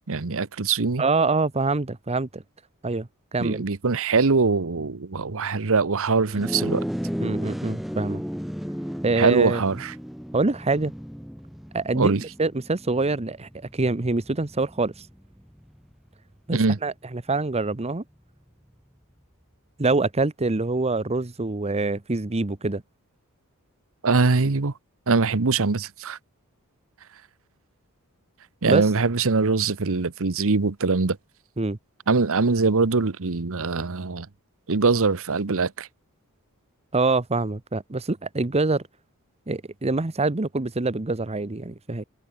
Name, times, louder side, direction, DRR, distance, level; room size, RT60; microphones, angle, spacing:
voice 1, 0.1-1.0 3.4-6.9 9.1-9.9 11.9-12.2 16.5-16.8 24.0-24.7 25.1-26.2 28.6-31.2 32.1-34.3 34.7-35.9, right 4 dB, 65° right, 1.0 m, -22 dB
voice 2, 1.0-2.4 2.8-3.6 7.2-8.2 9.0-9.6 10.3-10.9 11.7-15.1 16.5-18.0 19.8-22.8 28.7-28.8 31.6-31.8 36.9-38.8 39.5-42.0, right 3 dB, 30° right, 0.9 m, -25 dB
sound 1, 6.3-15.9, equal, ahead, 0.9 m, -34 dB
head